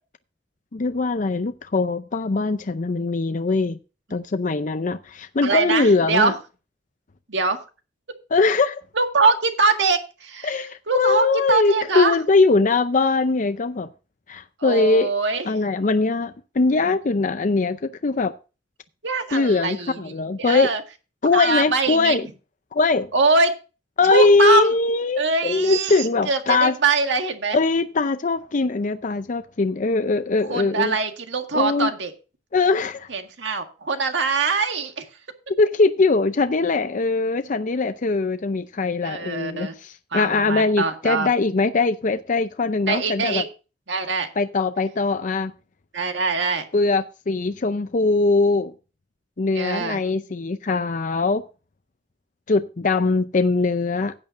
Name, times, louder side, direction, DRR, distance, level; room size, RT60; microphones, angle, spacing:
voice 1, 0.7-3.8 4.1-6.3 8.3-8.8 10.4-13.9 14.3-15.1 15.4-18.3 19.3-20.7 21.2-22.3 22.7-23.1 24.0-26.7 27.5-31.0 31.5-31.9 32.5-33.1 35.6-43.4 44.4-45.5 46.7-48.7 49.4-51.4 52.5-54.1, left 3 dB, 45° left, 0.5 m, -21 dB
voice 2, 5.4-6.3 7.3-7.6 8.9-10.5 10.9-12.2 14.6-15.5 19.0-20.1 20.4-20.8 21.3-22.2 23.1-23.5 24.1-24.7 25.2-27.6 30.5-32.1 33.1-35.0 39.0-39.7 40.1-41.3 42.9-43.4 43.9-44.3 45.9-46.6 49.5-50.0, right 4 dB, 85° right, 1.8 m, -23 dB
16.0 x 8.8 x 2.6 m
head